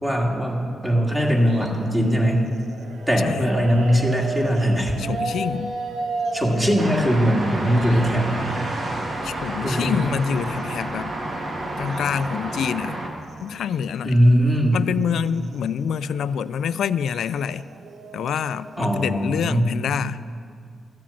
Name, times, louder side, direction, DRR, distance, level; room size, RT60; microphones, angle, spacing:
voice 1, 0.0-2.5 3.1-5.0 6.3-8.5 9.6-10.0 14.0-14.8 18.8-19.8, equal, 10° right, -1 dB, 1.9 m, -20 dB
sound 1, 1.2-8.2 8.6-12.3 12.6-12.7 13.0-13.8 14.0-19.4, right 3 dB, 75° right, 0.9 m, -36 dB
voice 2, 5.0-5.7 9.2-11.1 11.8-13.0 13.4-14.2 14.7-17.6 18.1-20.2, left 8 dB, 85° left, 15 dB, 0.3 m, -26 dB
sound 2, 6.8-13.1, right 1 dB, 50° right, 1.7 m, -30 dB
14.0 x 7.6 x 7.0 m, 2.2 s
wide cardioid pair, 135°, 0 cm